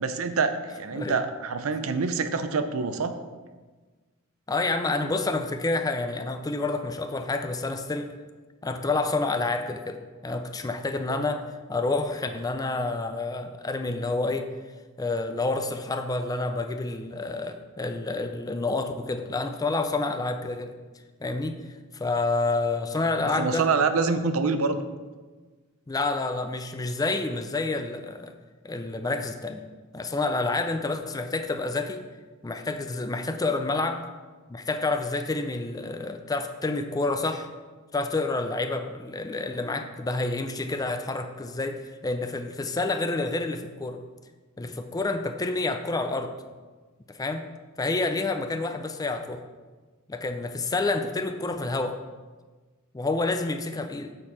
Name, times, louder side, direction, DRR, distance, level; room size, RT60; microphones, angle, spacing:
voice 1, 0.0-3.1 11.1-11.2 23.4-24.8, right 4 dB, 90° right, 9 dB, 0.6 m, -26 dB
voice 2, 4.5-8.1 8.6-14.5 15.0-20.7 21.2-21.6 21.9-23.7 25.9-28.3 28.6-29.6 29.9-32.0 32.4-34.0 34.5-37.5 37.9-44.0 44.6-46.3 47.1-47.5 47.8-49.4 50.1-52.0 52.9-54.1, left 3 dB, 20° left, 8 dB, 0.4 m, -28 dB
7.5 x 4.4 x 4.8 m, 1.3 s
head